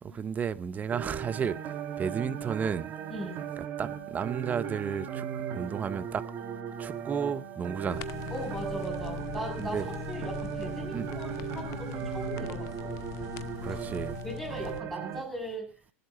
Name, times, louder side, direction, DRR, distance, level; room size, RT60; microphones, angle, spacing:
voice 1, 0.0-1.6 2.0-2.9 3.8-5.3 5.5-6.2 6.8-8.0 9.6-9.8 10.9-11.1 13.6-14.2, right 7 dB, 20° right, 0.7 m, -32 dB
sound 1, 0.9-15.2, right 8 dB, 35° right, 1.4 m, -37 dB
voice 2, 3.1-3.5 8.3-12.9 13.7-13.9 14.2-15.7, equal, 5° left, 7.0 m, -39 dB
sound 2, 7.9-14.8, left 12 dB, 45° left, 0.8 m, -41 dB
17.0 x 8.1 x 5.7 m
hypercardioid pair, 110°, 7 cm